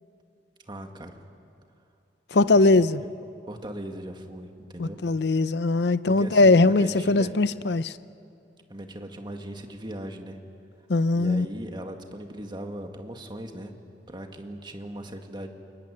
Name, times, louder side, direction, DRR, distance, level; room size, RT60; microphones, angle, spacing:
voice 1, 0.7-1.2 2.5-3.1 3.5-5.0 6.0-7.3 8.7-10.4 11.1-13.7 14.1-15.5, right 1 dB, 25° right, 1.9 m, -38 dB
voice 2, 2.3-3.0 4.8-7.9 10.9-11.5, left 3 dB, 65° left, 0.7 m, -20 dB
28.0 x 22.0 x 9.8 m
head